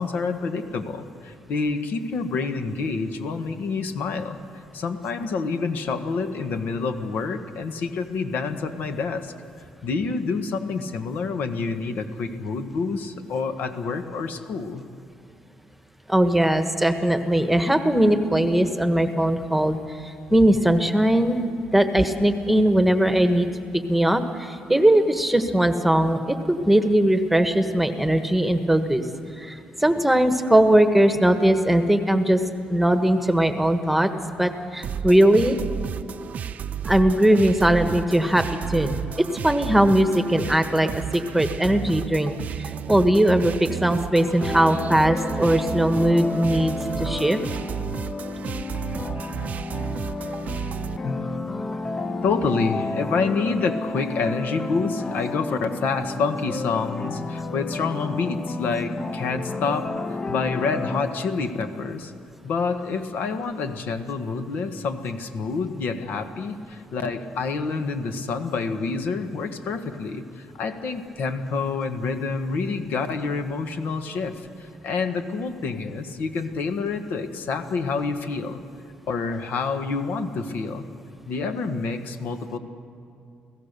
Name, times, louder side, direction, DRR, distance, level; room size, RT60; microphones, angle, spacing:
voice 1, 0.0-4.4 4.7-9.3 9.8-14.8 51.0-51.8 52.2-62.1 62.4-78.6 79.1-80.8 81.3-82.6, left 4 dB, 70° left, 7 dB, 1.5 m, -28 dB
voice 2, 16.1-21.4 21.7-23.6 23.9-29.0 29.4-32.4 32.7-34.1 34.4-35.6 36.9-42.3 42.6-47.4, right 1 dB, 5° right, 7 dB, 1.3 m, -20 dB
sound 1, 34.8-51.0, right 8 dB, 55° right, 0.6 m, -33 dB
sound 2, 44.4-61.6, left 3 dB, 30° left, 0.8 m, -32 dB
29.5 x 16.5 x 6.8 m, 2.4 s
cardioid pair, 115°, 3 cm